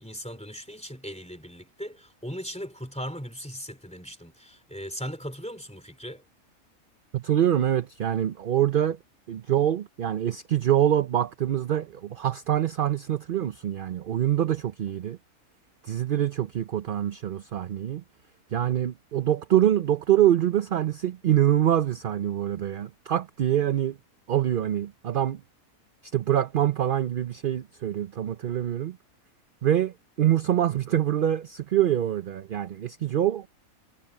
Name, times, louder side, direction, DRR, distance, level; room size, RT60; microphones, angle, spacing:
voice 1, 0.0-6.2, equal, 5° left, 3.0 m, -38 dB
voice 2, 7.1-9.0 9.3-15.2 15.9-18.0 18.5-24.0 24.3-25.4 26.1-29.0 29.6-33.5, right 11 dB, 55° right, 0.6 m, -25 dB
omnidirectional pair, 1.5 m